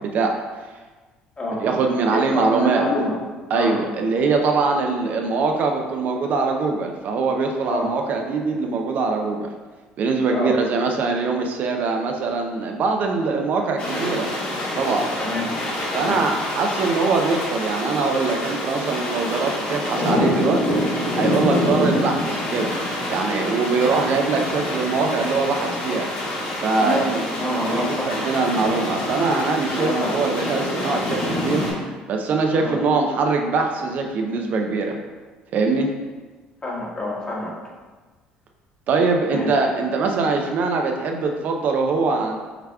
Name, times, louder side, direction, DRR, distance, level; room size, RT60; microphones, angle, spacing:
voice 1, 1.6-2.8 3.5-9.5 10.0-14.3 14.8-15.1 15.9-20.6 21.1-22.7 23.1-26.1 26.6-27.2 27.6-31.6 32.1-35.0 35.5-35.9 38.9-42.4, right 4 dB, 60° right, 2 dB, 0.5 m, -22 dB
voice 2, 2.1-3.2 3.5-3.8 7.7-7.9 10.3-10.6 15.2-15.6 15.9-16.2 26.8-28.2 29.8-30.1 32.5-32.8 36.6-37.5 39.2-39.5, equal, 30° left, -4 dB, 1.4 m, -26 dB
sound 1, 13.8-31.7, left 1 dB, 55° left, 1.4 m, -26 dB
5.7 x 3.4 x 2.3 m, 1.3 s
supercardioid pair, 75°, 3 cm